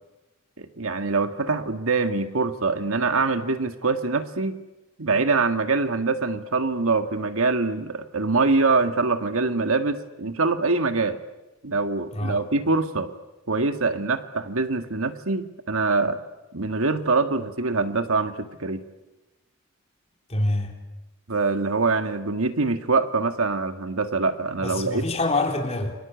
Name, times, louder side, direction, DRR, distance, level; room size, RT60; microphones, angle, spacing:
voice 1, 0.6-4.6 5.0-11.2 11.6-13.1 13.5-16.2 16.5-18.8 21.3-25.0, right 3 dB, 80° right, 8 dB, 1.8 m, -24 dB
voice 2, 20.3-20.7 24.6-25.9, left 2 dB, 30° left, 2 dB, 3.9 m, -25 dB
29.5 x 24.0 x 8.3 m, 1.0 s
head